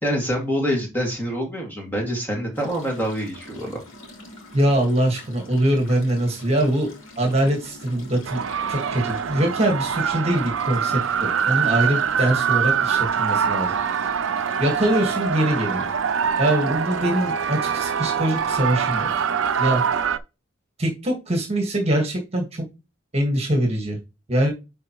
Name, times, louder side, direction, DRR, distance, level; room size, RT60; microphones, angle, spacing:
voice 1, 0.0-3.8, equal, 10° left, 0 dB, 2.2 m, -26 dB
sound 1, 2.5-20.1, left 1 dB, 85° left, 2.6 m, -45 dB
voice 2, 4.5-6.9 7.2-8.4 8.7-13.7 14.6-15.9 16.4-19.1 19.6-19.8 20.8-22.6 23.1-24.0 24.3-24.5, right 1 dB, 30° right, 2 dB, 1.7 m, -23 dB
sound 2, 8.3-20.2, right 7 dB, 80° right, 0.5 m, -24 dB
10.0 x 4.0 x 3.1 m, 0.27 s
head